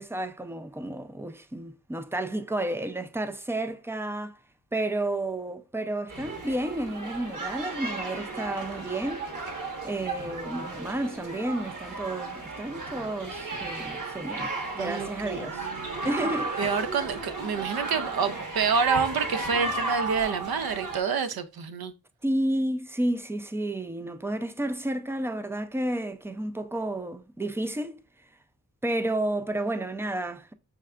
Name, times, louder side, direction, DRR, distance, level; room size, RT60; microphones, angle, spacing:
voice 1, 0.0-4.4 4.7-15.7 16.0-16.7 22.2-28.0 28.8-30.5, right 1 dB, 5° right, 0.3 m, -31 dB
sound 1, 6.1-21.0, right 3 dB, 55° right, 1.2 m, -34 dB
voice 2, 14.8-16.1 16.6-21.9, right 6 dB, 80° right, 0.6 m, -28 dB
5.7 x 3.3 x 2.3 m
wide cardioid pair, 105°, 36 cm